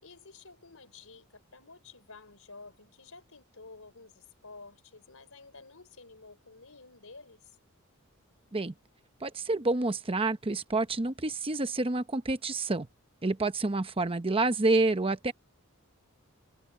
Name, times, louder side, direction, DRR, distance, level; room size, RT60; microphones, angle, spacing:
voice 1, 0.0-7.5, left 3 dB, 70° left, 5.2 m, -51 dB
voice 2, 9.2-12.9 13.2-15.3, right 2 dB, 25° right, 0.9 m, -28 dB
head